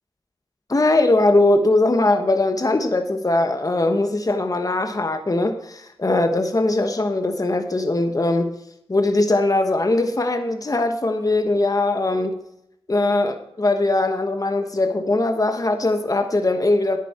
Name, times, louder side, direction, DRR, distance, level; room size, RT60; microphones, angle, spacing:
voice 1, 0.7-8.5 8.9-12.4 12.9-17.0, left 2 dB, 35° left, 6 dB, 1.2 m, -20 dB
10.0 x 9.1 x 4.4 m, 0.79 s
cardioid pair, 40°, 10 cm